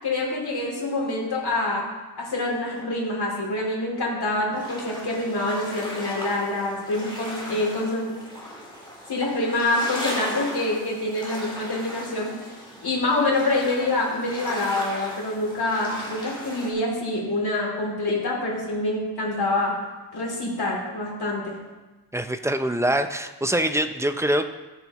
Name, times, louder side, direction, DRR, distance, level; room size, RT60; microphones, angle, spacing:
voice 1, 0.0-1.9 2.2-8.1 9.1-12.3 12.8-19.8 20.1-21.6, left 2 dB, 65° left, -3 dB, 2.9 m, -26 dB
sound 1, 4.5-16.7, left 1 dB, 10° left, 3.2 m, -37 dB
voice 2, 22.1-24.4, right 1 dB, 5° right, 8 dB, 0.5 m, -24 dB
14.5 x 8.2 x 3.0 m, 1.2 s
wide cardioid pair, 125°, 41 cm